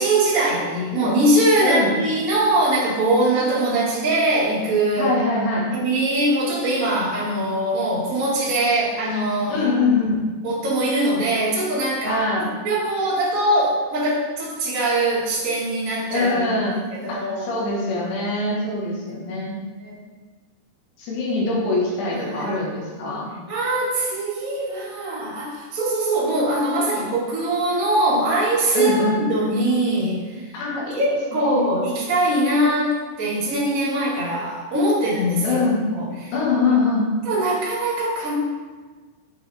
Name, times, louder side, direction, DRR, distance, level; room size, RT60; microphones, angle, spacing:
voice 1, 0.0-5.1 5.7-9.7 10.4-12.2 12.6-16.7 17.0-17.5 18.4-18.5 19.1-19.5 19.8-20.0 22.1-22.6 23.5-30.4 30.9-35.6 35.9-36.3 37.2-38.3, right 1 dB, 40° right, -9 dB, 1.1 m, -22 dB
voice 2, 1.6-1.9 5.0-5.7 9.5-10.2 12.1-12.5 16.1-16.8 17.1-19.6 21.0-23.3 28.8-29.2 30.5-31.0 31.3-31.7 35.4-35.8 36.3-37.1, left 3 dB, 75° left, -3 dB, 3.6 m, -23 dB
8.1 x 5.6 x 3.4 m, 1.3 s
omnidirectional pair, 5.1 m